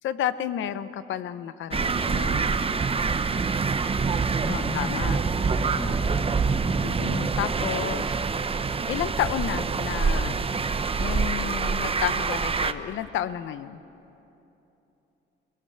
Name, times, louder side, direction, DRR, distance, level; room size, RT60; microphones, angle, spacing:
voice 1, 0.0-2.5 4.5-5.2 6.8-8.2 8.9-10.5 11.0-13.8, left 10 dB, 75° left, 13 dB, 0.9 m, -31 dB
sound 1, 1.7-12.7, right 4 dB, 30° right, 0.8 m, -26 dB
voice 2, 4.4-7.0, left 2 dB, 15° left, 2 dB, 1.6 m, -37 dB
22.5 x 20.5 x 7.0 m, 2.9 s
cardioid pair, 90°, 20 cm